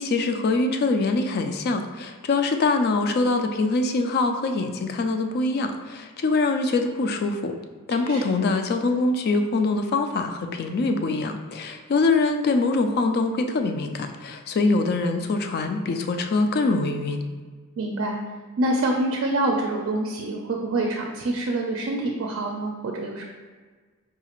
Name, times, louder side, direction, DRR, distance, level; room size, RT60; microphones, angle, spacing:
voice 1, 0.0-7.5 7.9-17.2, left 3 dB, 50° left, 6 dB, 0.3 m, -24 dB
voice 2, 8.0-8.4 17.8-18.2 18.6-23.3, right 2 dB, 60° right, 1 dB, 0.4 m, -26 dB
4.7 x 2.4 x 2.9 m, 1.4 s
head